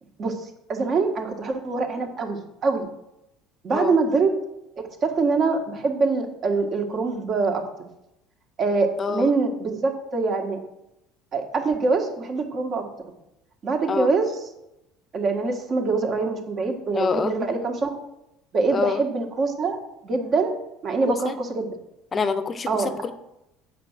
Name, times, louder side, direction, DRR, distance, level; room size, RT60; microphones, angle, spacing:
voice 1, 0.7-2.9 3.6-4.3 4.8-7.6 8.6-10.6 11.3-12.8 13.6-14.3 15.1-18.0 18.5-19.8 20.0-20.5 20.8-21.7 22.7-23.0, right 4 dB, 40° right, 3 dB, 1.7 m, -24 dB
voice 2, 9.0-9.3 13.9-14.1 16.9-17.5 18.7-19.0 21.1-21.3 22.1-23.1, left 5 dB, 25° left, 12 dB, 0.7 m, -26 dB
8.0 x 5.1 x 7.3 m, 0.87 s
supercardioid pair, 115°, 0 cm